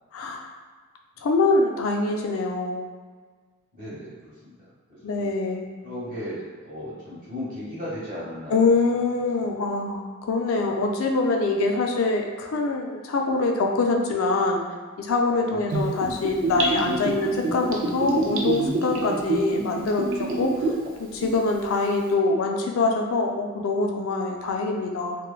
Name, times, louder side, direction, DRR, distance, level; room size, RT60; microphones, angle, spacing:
voice 1, 0.1-0.5 1.2-2.9 5.0-5.7 8.5-14.6 15.0-20.7 21.0-25.2, left 3 dB, 70° left, 2 dB, 0.4 m, -24 dB
voice 2, 3.7-4.5 4.9-5.3 5.8-8.7 15.5-15.8 20.5-20.8, left 1 dB, 45° right, -9 dB, 1.1 m, -36 dB
Gurgling / Bathtub (filling or washing), 15.7-20.9 21.2-21.3, right 3 dB, 65° right, 0.4 m, -26 dB
3.1 x 2.2 x 2.3 m, 1.5 s
head